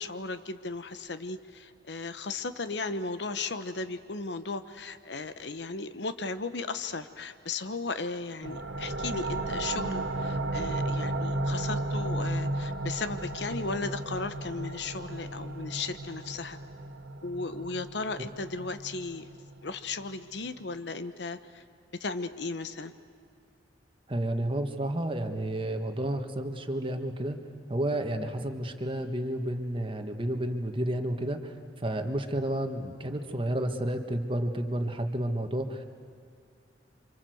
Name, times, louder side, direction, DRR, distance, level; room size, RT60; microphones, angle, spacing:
voice 1, 0.0-16.6 17.2-19.3 19.6-21.6 22.0-22.9, left 3 dB, 70° left, 11 dB, 1.0 m, -36 dB
sound 1, 8.4-19.8, right 1 dB, 90° right, 1.8 m, -34 dB
voice 2, 24.1-27.4 27.7-35.8, right 1 dB, 30° right, 6 dB, 1.6 m, -31 dB
29.0 x 25.5 x 7.9 m, 2.3 s
head